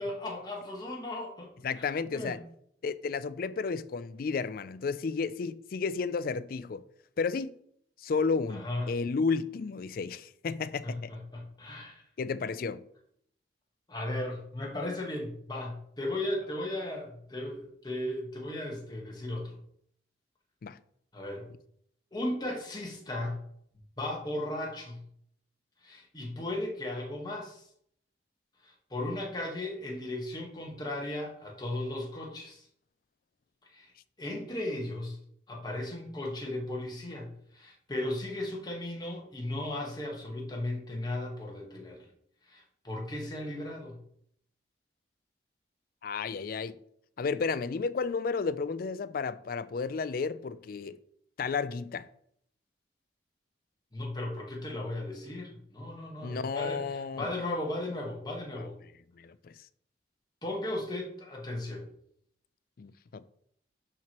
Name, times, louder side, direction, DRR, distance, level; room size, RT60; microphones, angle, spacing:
voice 1, 0.0-2.4 8.5-9.0 10.8-12.0 13.9-19.6 21.1-21.5 22.1-23.4 24.0-25.0 25.8-27.6 28.6-32.6 33.7-33.9 34.2-35.2 35.5-42.1 42.5-44.0 53.9-58.8 60.4-61.9, left 1 dB, 25° left, 1.5 m, -36 dB
voice 2, 1.6-2.4 2.8-6.8 7.2-7.5 8.0-11.1 12.2-12.8 20.6-20.8 46.0-46.8 47.2-51.0 51.4-52.1 56.2-57.3 59.2-59.5 62.8-63.3, left 5 dB, 55° left, 0.4 m, -32 dB
11.5 x 4.5 x 3.1 m
head